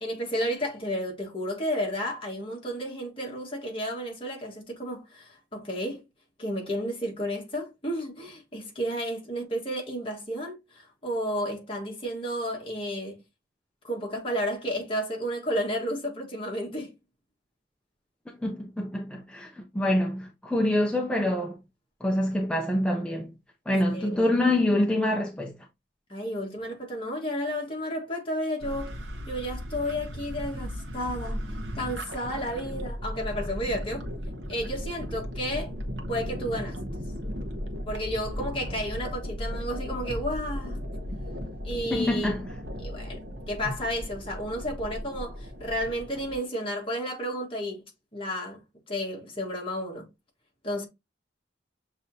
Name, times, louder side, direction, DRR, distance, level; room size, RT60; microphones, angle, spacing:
voice 1, 0.0-6.0 6.4-13.2 13.8-16.9 23.9-24.2 26.1-28.9 29.3-31.4 31.8-34.1 34.5-35.7 36.1-36.8 37.9-40.8 41.6-42.4 42.8-43.2 43.5-47.8 48.1-48.6 48.9-50.1 50.6-50.9, equal, 30° left, 1.4 m, -32 dB
voice 2, 18.4-21.6 22.0-23.3 23.7-25.5 41.9-42.4, left 1 dB, 5° left, 0.5 m, -26 dB
sound 1, 28.6-46.4, equal, 65° right, 0.9 m, -36 dB
6.7 x 2.9 x 2.7 m
head